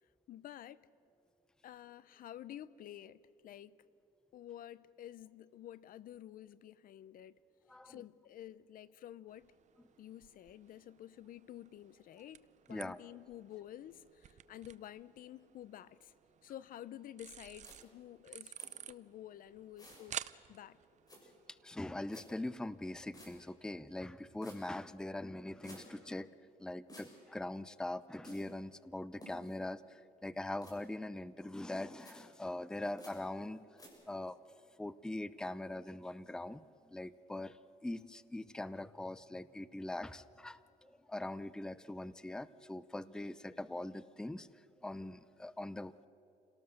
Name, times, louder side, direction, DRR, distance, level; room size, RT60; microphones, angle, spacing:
voice 1, 0.3-0.9 1.6-3.8 4.3-7.4 7.8-9.5 10.0-12.4 12.7-16.1 16.4-18.5 18.9-20.2 20.5-20.8, left 12 dB, 55° left, 0.6 m, -50 dB
voice 2, 7.7-8.0 12.7-13.0 21.6-26.3 26.6-33.8 34.1-34.4 34.8-46.1, left 1 dB, 5° left, 0.5 m, -42 dB
sound 1, 9.3-23.4, right 10 dB, 45° right, 0.6 m, -53 dB
sound 2, 17.6-17.8 18.6-18.7 19.8-20.1 21.1-21.2 22.1-22.2 23.1-23.3 24.4-24.6 25.6-25.8 26.9-27.1 28.2-28.4 29.2-29.5 30.6-30.7 32.0-32.1 33.0-33.1 33.8-33.9, left 1 dB, 20° left, 6.7 m, -53 dB
28.5 x 18.0 x 6.6 m
cardioid pair, 110°, 17 cm